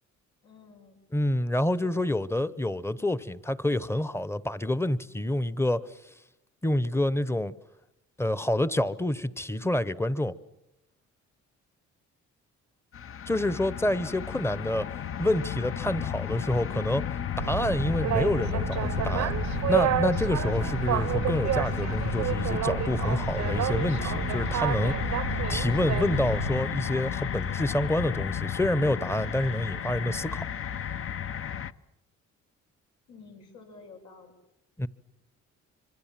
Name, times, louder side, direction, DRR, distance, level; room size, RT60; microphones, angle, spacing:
voice 1, 0.4-1.0 1.8-2.1 14.6-15.2 33.1-34.3, left 4 dB, 85° left, 7.1 m, -50 dB
voice 2, 1.1-5.8 6.6-7.5 8.2-10.3 13.3-14.9 15.2-17.0 17.4-19.3 19.7-25.0 25.5-30.4 34.8-34.9, left 1 dB, 10° left, 0.9 m, -28 dB
sound 1, 12.9-31.7, left 9 dB, 45° left, 0.9 m, -33 dB
Boat Water vehicle, 17.4-26.6, right 11 dB, 65° right, 0.8 m, -30 dB
26.0 x 24.5 x 7.5 m
cardioid pair, 90°, 30 cm